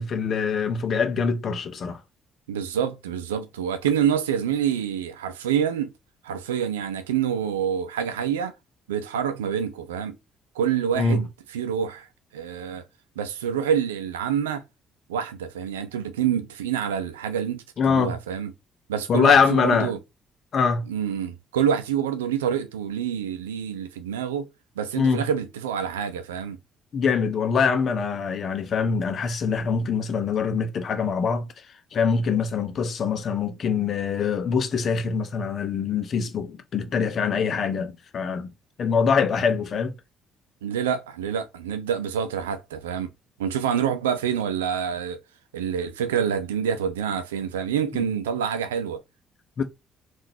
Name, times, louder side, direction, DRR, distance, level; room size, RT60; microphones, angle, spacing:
voice 1, 0.0-2.0 11.0-11.2 17.8-18.2 19.1-19.9 20.5-20.9 25.0-25.3 26.9-31.5 31.9-38.5 38.8-39.9 49.6-49.7, left 5 dB, 50° left, 0.7 m, -23 dB
voice 2, 2.5-5.9 6.2-8.5 8.9-10.2 10.6-12.1 12.3-12.8 13.2-14.6 15.1-18.5 18.9-20.0 20.9-24.5 24.8-26.6 40.6-43.1 43.4-45.2 45.5-49.0, right 8 dB, 85° right, 0.5 m, -27 dB
3.8 x 2.5 x 2.8 m
hypercardioid pair, 50°, 0 cm